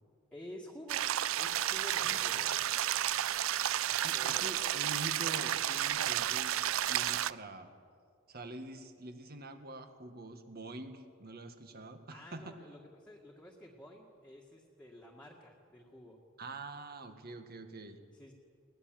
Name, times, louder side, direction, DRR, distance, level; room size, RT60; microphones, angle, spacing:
voice 1, 0.3-1.0 1.3-2.6 4.1-4.8 12.1-16.2 18.1-18.3, left 1 dB, 5° left, -2 dB, 1.8 m, -51 dB
sound 1, 0.9-7.3, right 12 dB, 90° right, 0.5 m, -32 dB
voice 2, 3.9-7.7 8.3-12.5 16.4-18.0, right 2 dB, 50° right, 7 dB, 1.8 m, -45 dB
20.5 x 19.0 x 7.6 m, 2.2 s
head